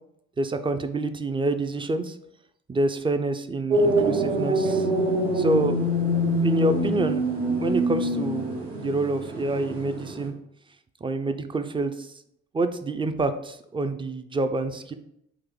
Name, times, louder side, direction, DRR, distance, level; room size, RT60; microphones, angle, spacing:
voice 1, 0.4-2.2 2.7-4.9 5.3-5.8 6.4-7.2 7.6-10.3 11.0-12.1 12.5-14.9, right 2 dB, 15° right, 9 dB, 0.3 m, -27 dB
sound 1, 3.7-10.3, equal, 75° right, 1.2 m, -25 dB
3.8 x 2.6 x 3.5 m, 0.76 s
hypercardioid pair, 50°, 34 cm